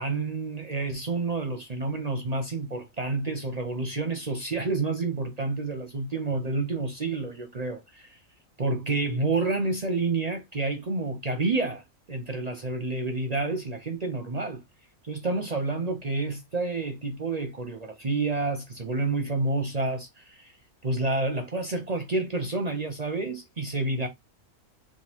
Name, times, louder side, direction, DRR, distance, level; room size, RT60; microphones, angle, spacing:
voice 1, 0.0-8.2 8.6-11.8 12.1-14.6 15.0-20.5 20.8-24.1, right 3 dB, 45° right, 0.5 m, -29 dB
3.7 x 2.2 x 4.3 m
omnidirectional pair, 1.5 m